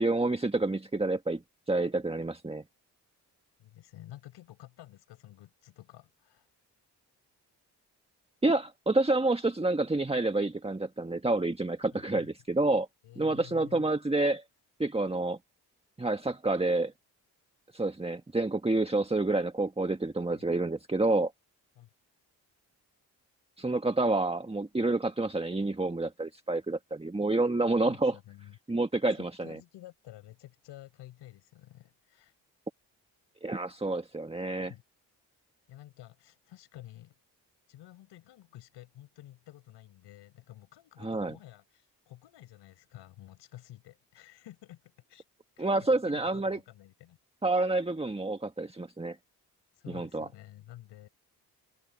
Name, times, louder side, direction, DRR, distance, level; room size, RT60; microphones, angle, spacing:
voice 1, 0.0-1.4 1.7-2.6 8.4-12.9 13.2-14.4 14.8-15.4 16.0-16.9 17.7-21.3 23.6-28.2 28.7-29.6 33.4-34.7 41.0-41.3 45.6-46.6 47.4-49.2 49.9-50.3, right 2 dB, 15° right, 1.6 m, -28 dB
voice 2, 3.6-6.5 11.9-12.3 13.0-13.9 20.3-20.5 21.8-21.9 27.8-28.6 29.1-32.3 34.6-34.8 35.7-37.2 37.7-45.3 45.6-47.2 49.7-51.1, left 14 dB, 90° left, 5.5 m, -51 dB
supercardioid pair, 55°, 41 cm